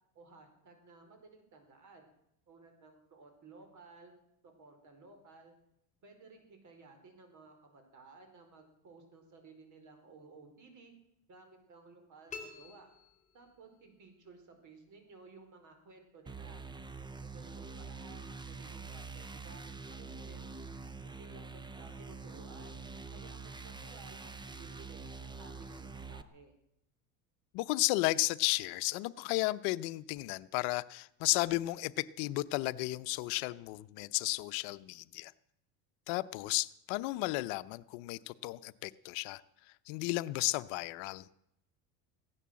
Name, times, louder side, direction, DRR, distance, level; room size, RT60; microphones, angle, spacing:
voice 1, 0.1-2.1 2.5-4.1 4.4-5.5 6.0-10.9 11.3-12.9 13.3-16.6 17.2-20.5 21.0-22.8 23.1-26.5, right 4 dB, 40° right, 5 dB, 4.4 m, -57 dB
sound 1, 12.3-13.9, left 5 dB, 15° left, 3.1 m, -49 dB
sound 2, 16.3-26.2, right 4 dB, 10° right, 0.7 m, -45 dB
voice 2, 27.5-35.3 36.1-39.4 39.9-41.3, left 20 dB, 70° left, 15 dB, 0.8 m, -33 dB
16.0 x 11.0 x 7.6 m, 0.77 s
supercardioid pair, 115°, 44 cm